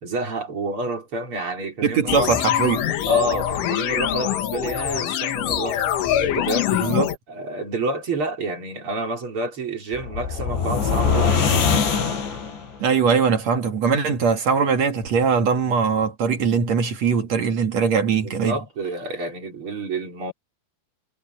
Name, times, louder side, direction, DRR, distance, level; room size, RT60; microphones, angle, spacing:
voice 1, 0.0-2.3 3.1-5.9 6.2-6.7 7.3-11.8 18.2-20.3, right 2 dB, 30° right, 4.4 m, -29 dB
voice 2, 1.8-2.9 6.8-7.1 12.8-18.6, right 6 dB, 50° right, 2.2 m, -21 dB
sound 1, 2.1-7.2, left 11 dB, 85° left, 4.5 m, -23 dB
sound 2, 9.9-12.8, left 6 dB, 70° left, 6.8 m, -22 dB
omnidirectional pair, 5.4 m